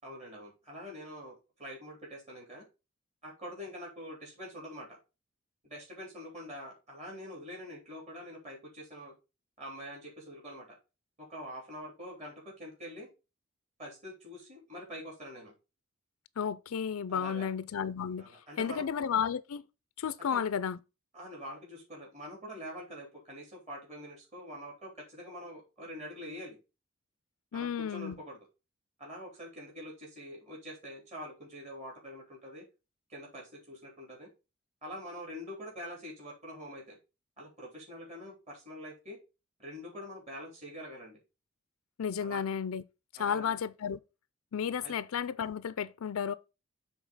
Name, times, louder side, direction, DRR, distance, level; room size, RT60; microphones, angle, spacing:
voice 1, 0.0-2.7 3.2-5.0 5.6-9.1 9.6-10.8 11.2-13.1 13.8-15.5 17.1-17.5 18.2-18.8 20.2-20.4 21.1-26.6 27.5-28.4 29.0-32.6 33.1-34.3 34.8-37.0 37.4-39.2 39.6-41.2 42.2-42.4 43.2-43.6 44.8-44.9, equal, 30° right, 3.7 m, -45 dB
voice 2, 16.4-18.2 18.6-19.7 20.0-20.8 27.5-28.2 42.0-42.8 43.1-44.0 44.5-46.3, left 7 dB, 85° left, 0.4 m, -33 dB
7.1 x 4.0 x 5.5 m
head